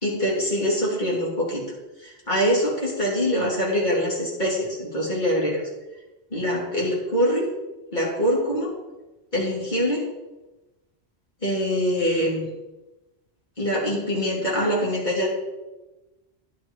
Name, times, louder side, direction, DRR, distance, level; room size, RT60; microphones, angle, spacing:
voice 1, 0.0-1.6 2.0-5.6 6.3-7.5 7.9-8.7 9.3-10.0 11.4-12.5 13.6-15.3, equal, 45° left, -4 dB, 3.1 m, -24 dB
11.0 x 8.2 x 4.6 m, 1.1 s
omnidirectional pair, 1.1 m